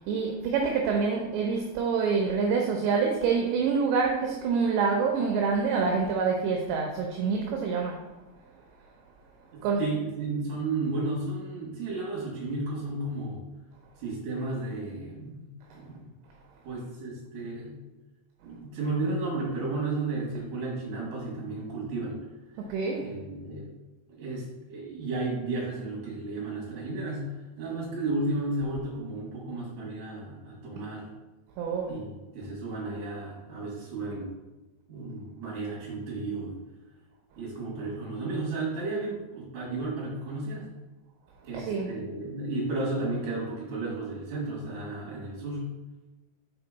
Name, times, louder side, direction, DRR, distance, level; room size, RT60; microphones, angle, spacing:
voice 1, 0.1-8.0 9.6-9.8 22.6-23.1 31.6-31.9 41.5-41.9, right 5 dB, 80° right, 1 dB, 2.8 m, -26 dB
voice 2, 9.5-13.4 14.0-15.5 15.7-16.1 16.6-17.8 18.4-22.2 23.0-23.7 24.2-31.1 31.9-34.3 34.9-36.6 37.4-40.7 41.4-45.7, right 2 dB, 55° right, -4 dB, 3.1 m, -33 dB
6.4 x 4.5 x 4.0 m, 1.1 s
omnidirectional pair, 5.3 m